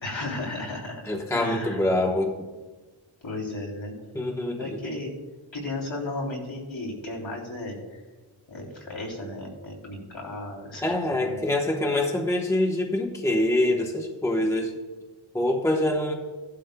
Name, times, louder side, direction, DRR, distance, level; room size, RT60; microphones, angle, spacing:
voice 1, 0.0-1.8 3.2-3.9 4.6-5.1 5.5-8.0 8.5-11.4, left 2 dB, 65° left, -2 dB, 3.2 m, -34 dB
voice 2, 1.1-2.4 4.1-4.8 10.8-14.7 15.3-16.1, left 1 dB, 5° left, 1 dB, 1.0 m, -25 dB
16.5 x 11.5 x 2.2 m, 1.3 s
wide cardioid pair, 115°, 49 cm